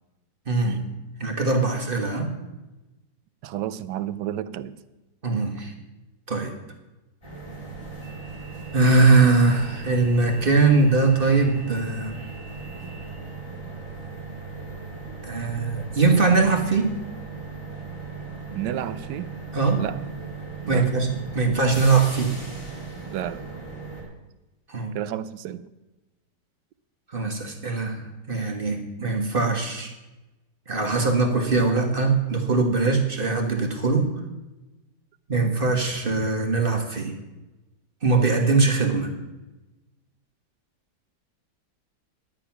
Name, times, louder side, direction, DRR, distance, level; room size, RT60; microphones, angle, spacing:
voice 1, 0.5-0.8 1.2-2.3 5.2-5.7 6.3-6.5 8.7-12.1 15.2-16.9 19.5-19.8 20.7-21.1 21.3-22.3 24.7-25.0 27.1-28.0 28.3-29.9 30.7-34.1 35.3-37.1 38.0-39.1, right 3 dB, 35° right, 4 dB, 1.5 m, -21 dB
voice 2, 3.4-4.8 15.1-15.2 18.5-19.3 19.7-20.0 20.6-20.9 23.1-23.4 24.9-25.7, right 11 dB, 85° right, 15 dB, 1.3 m, -31 dB
sound 1, 7.2-24.0, right 4 dB, 15° left, 3.5 m, -37 dB
11.5 x 9.3 x 5.9 m, 1.1 s
omnidirectional pair, 1.8 m